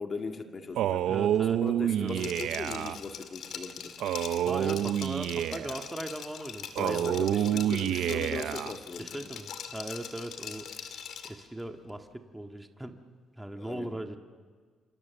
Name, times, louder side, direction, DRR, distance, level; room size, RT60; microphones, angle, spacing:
voice 1, 0.0-1.1 1.6-4.0 6.8-9.3 13.6-13.9, left 4 dB, 40° left, 5 dB, 1.9 m, -38 dB
Male speech man speaking, 0.8-3.0 4.0-5.8 6.8-8.8, right 11 dB, 80° right, 0.7 m, -28 dB
voice 2, 1.1-2.3 4.4-7.7 9.0-10.7 11.2-13.0 13.4-14.2, right 1 dB, 10° right, 4 dB, 1.9 m, -39 dB
Liquid, 2.1-11.4, left 8 dB, 70° left, 2.5 m, -42 dB
27.0 x 27.0 x 7.2 m, 1.6 s
cardioid pair, 90°, 0 cm